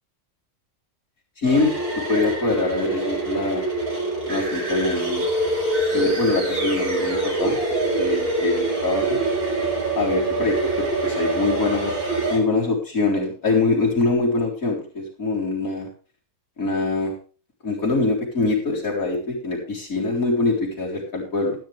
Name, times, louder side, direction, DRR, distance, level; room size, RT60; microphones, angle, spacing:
voice 1, 1.4-3.6 4.3-5.2 5.9-7.6 8.0-9.2 9.9-12.0 12.3-15.9 16.6-17.1 17.6-21.6, left 3 dB, 65° left, -4 dB, 4.4 m, -24 dB
sound 1, 1.4-12.4, right 2 dB, 85° right, 5.5 m, -25 dB
15.0 x 11.5 x 3.5 m, 0.37 s
omnidirectional pair, 1.6 m